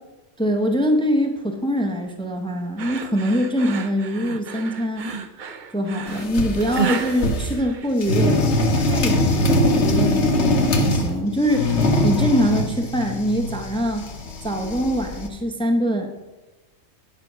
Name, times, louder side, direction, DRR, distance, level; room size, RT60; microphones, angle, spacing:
voice 1, 0.4-5.1 5.7-8.4 8.7-14.1 14.4-16.1, equal, 5° left, 4 dB, 0.6 m, -23 dB
sound 1, 2.8-8.3, right 6 dB, 50° right, 0.7 m, -31 dB
sound 2, 6.1-7.6 8.0-11.1 11.4-15.3, left 1 dB, 60° left, 1.3 m, -22 dB
10.5 x 5.0 x 6.0 m, 1.1 s
omnidirectional pair, 1.3 m